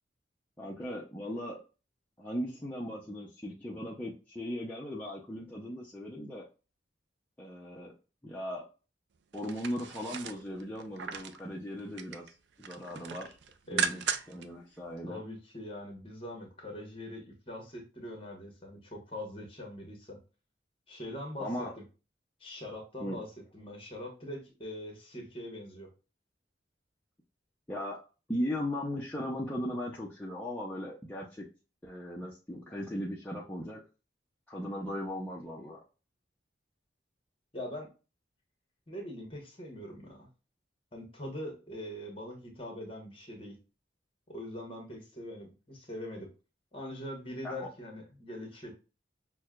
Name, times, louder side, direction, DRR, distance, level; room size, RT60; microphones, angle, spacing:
voice 1, 0.6-1.6 2.2-6.4 7.4-7.9 8.2-8.6 9.3-13.4 13.7-14.0 14.3-15.2 21.4-21.7 23.0-23.2 27.7-28.0 28.3-31.4 31.8-33.8 34.5-35.8 47.4-47.7, equal, 10° left, -5 dB, 0.6 m, -38 dB
sound 1, 9.3-11.4 11.8-12.3 12.6-14.5 14.8-14.9, right 6 dB, 70° right, 0.4 m, -36 dB
voice 2, 15.1-20.2 20.9-21.8 22.4-25.9 37.5-37.9 38.9-40.3 40.9-43.6 44.3-46.3 46.7-48.7, left 1 dB, 30° left, 1 dB, 1.1 m, -42 dB
6.1 x 2.2 x 2.3 m, 0.33 s
head